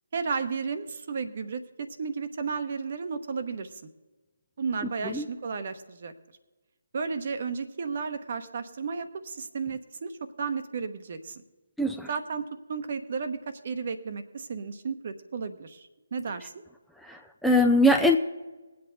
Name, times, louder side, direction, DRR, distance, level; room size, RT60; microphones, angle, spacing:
voice 1, 0.1-3.8 4.6-6.1 6.9-11.4 12.1-16.5, right 5 dB, 45° right, 9 dB, 1.1 m, -33 dB
voice 2, 11.8-12.1 17.0-18.2, left 1 dB, ahead, 2 dB, 0.5 m, -22 dB
20.0 x 8.1 x 4.0 m, 1.2 s
figure-of-eight pair, 145°, 0 cm